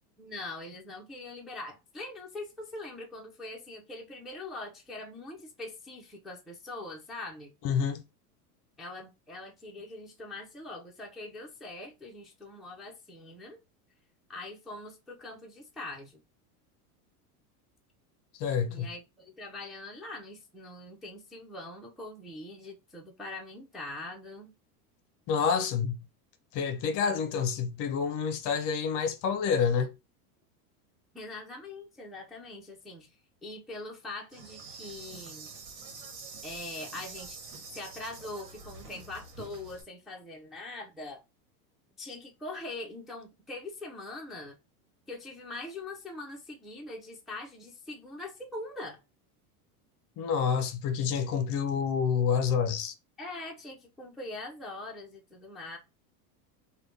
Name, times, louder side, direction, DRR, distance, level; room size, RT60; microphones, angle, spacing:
voice 1, 0.2-7.5 8.8-13.6 14.3-16.2 18.7-24.5 31.1-33.1 33.4-35.5 36.4-37.4 37.7-41.2 42.0-44.5 45.1-49.0 53.2-55.8, left 2 dB, ahead, 0.5 m, -42 dB
voice 2, 7.6-8.0 18.4-18.9 25.3-26.0 26.5-29.9 50.2-52.9, left 6 dB, 40° left, 0.6 m, -28 dB
Insect, 34.3-39.8, right 4 dB, 55° right, 1.4 m, -46 dB
3.3 x 2.3 x 3.7 m
supercardioid pair, 125°, 46 cm